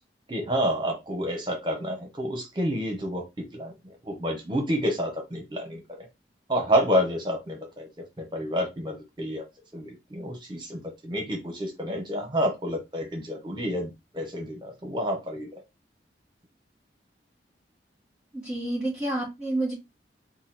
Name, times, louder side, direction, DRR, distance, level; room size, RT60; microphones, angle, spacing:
voice 1, 0.3-3.2 3.5-3.7 4.0-6.1 6.5-7.9 8.2-9.4 9.7-15.5, equal, 25° right, 2 dB, 1.1 m, -29 dB
voice 2, 18.3-19.7, right 1 dB, 5° right, -8 dB, 2.1 m, -29 dB
4.0 x 2.3 x 4.1 m, 0.22 s
head